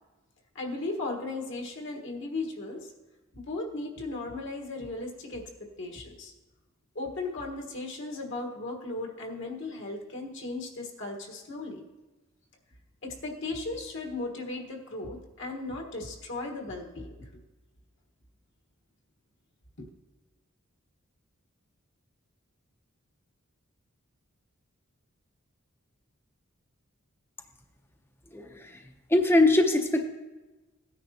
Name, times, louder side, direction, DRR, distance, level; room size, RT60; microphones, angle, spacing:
voice 1, 0.5-2.9 3.3-5.5 5.8-6.3 6.9-11.8 13.0-17.3 19.8-19.9, left 2 dB, 60° left, 1 dB, 1.4 m, -36 dB
voice 2, 28.3-28.8 29.1-30.0, left 2 dB, 10° left, 5 dB, 0.7 m, -22 dB
16.5 x 9.7 x 2.8 m, 1.1 s
head